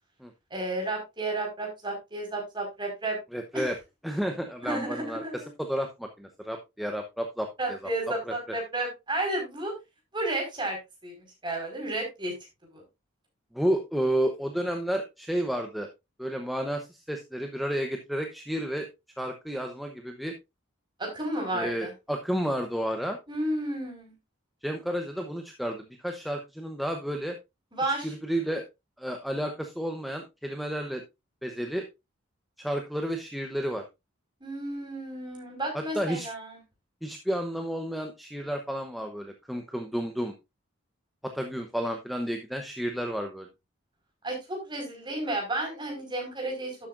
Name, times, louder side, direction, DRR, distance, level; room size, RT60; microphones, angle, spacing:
voice 1, 0.5-3.2 3.5-3.7 4.6-5.5 7.6-9.7 10.1-11.1 11.4-12.3 12.7-12.8 21.0-21.9 23.3-24.1 27.7-28.1 34.4-36.6 44.2-46.8, right 2 dB, 20° right, 1 dB, 4.8 m, -32 dB
voice 2, 3.3-3.8 4.0-7.8 8.3-8.4 13.5-15.9 16.2-18.9 19.2-20.3 21.5-23.2 24.6-27.4 28.0-28.7 29.0-31.0 31.4-31.9 32.6-33.8 35.7-36.3 37.0-40.3 41.2-43.5, equal, ahead, 4 dB, 0.8 m, -31 dB
12.0 x 8.4 x 2.5 m, 0.23 s
head